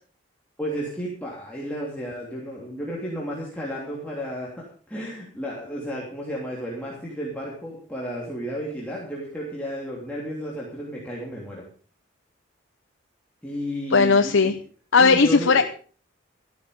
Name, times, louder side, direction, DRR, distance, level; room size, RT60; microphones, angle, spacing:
voice 1, 0.6-11.6 13.4-14.5 15.0-15.6, equal, 5° left, -5 dB, 3.1 m, -33 dB
voice 2, 13.9-14.5 14.9-15.6, left 4 dB, 70° left, 8 dB, 0.8 m, -17 dB
14.0 x 12.5 x 5.2 m, 0.42 s
head